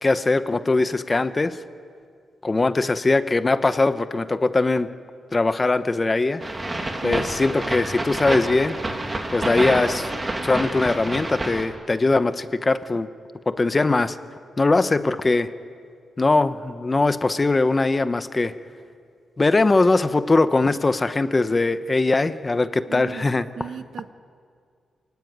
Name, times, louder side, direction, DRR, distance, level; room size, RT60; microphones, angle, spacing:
voice 1, 0.0-1.6 2.4-4.9 5.3-6.4 7.0-8.8 9.3-10.1 10.4-13.1 13.5-14.2 14.6-15.5 16.2-18.5 19.4-23.4, left 3 dB, 20° left, 12 dB, 0.7 m, -21 dB
sound 1, 6.4-11.7, right 2 dB, 20° right, 2.0 m, -28 dB
voice 2, 22.9-24.1, right 7 dB, 70° right, 10 dB, 1.2 m, -36 dB
28.0 x 17.5 x 9.3 m, 2.2 s
wide cardioid pair, 155°, 0 cm